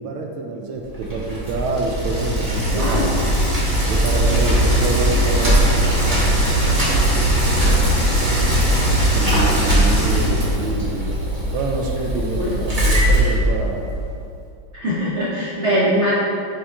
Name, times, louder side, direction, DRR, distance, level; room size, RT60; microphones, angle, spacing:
voice 1, 0.0-3.1 3.9-6.9 7.5-8.7 9.1-11.1 11.5-13.9, right 3 dB, 75° right, 2 dB, 1.4 m, -27 dB
Bicycle, 0.9-14.0, right 1 dB, 25° right, 0.9 m, -19 dB
voice 2, 2.7-3.1 12.4-12.6 14.7-16.1, equal, 60° right, -8 dB, 0.7 m, -21 dB
5.1 x 5.0 x 3.7 m, 2.4 s
omnidirectional pair, 2.4 m